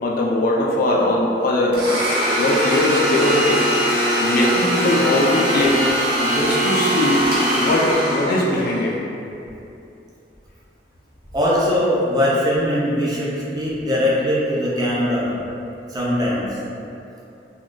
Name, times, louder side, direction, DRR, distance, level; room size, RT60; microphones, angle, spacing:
voice 1, 0.0-3.6 4.2-5.8 6.2-7.3 7.5-9.0, left 1 dB, 55° left, -2 dB, 0.4 m, -20 dB
Domestic sounds home sounds, 1.7-8.8, right 1 dB, 55° right, 0.8 m, -21 dB
voice 2, 11.3-15.3 15.9-16.5, left 1 dB, 20° right, -7 dB, 0.5 m, -20 dB
3.5 x 2.3 x 2.5 m, 2.7 s
head